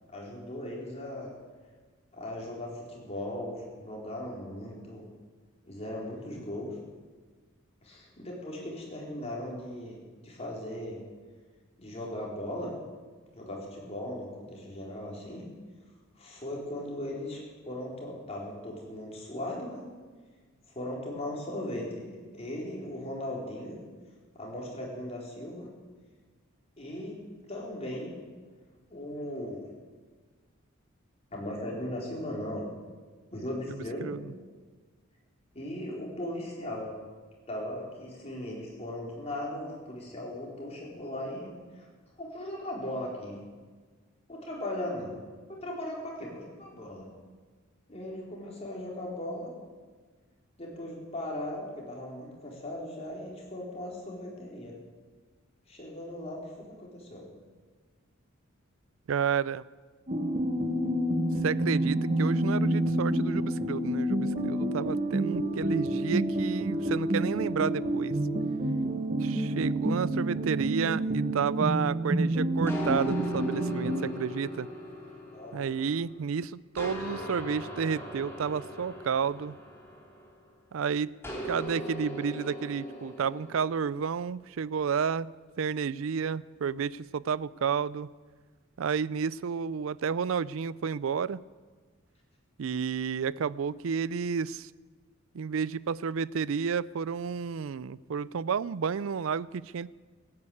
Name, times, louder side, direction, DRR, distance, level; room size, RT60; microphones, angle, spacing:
voice 1, 0.1-1.3 2.1-5.0 5.7-6.8 7.8-11.0 11.8-12.7 13.4-15.5 16.2-19.8 20.7-23.8 24.3-25.7 26.8-27.2 27.5-28.1 28.9-29.6 31.3-32.7 33.3-34.1 35.5-36.9 37.5-41.9 42.2-43.4 44.3-45.2 45.5-47.1 47.9-49.5 50.6-54.7 55.7-57.2 69.5-69.8 75.3-75.7, left 1 dB, 30° left, -3 dB, 4.3 m, -38 dB
voice 2, 34.0-34.3 59.1-59.6 61.4-68.1 69.2-74.7 75.5-79.5 80.7-81.1 81.4-85.3 85.6-88.1 88.8-91.4 92.6-94.7 95.3-99.9, right 6 dB, 70° right, 20 dB, 0.4 m, -31 dB
sound 1, 60.1-74.0, right 1 dB, 35° right, 1.2 m, -28 dB
sound 2, 72.7-76.2 76.8-80.5 81.2-83.9, left 1 dB, 10° left, 3.3 m, -39 dB
16.5 x 9.6 x 8.6 m, 1.4 s
head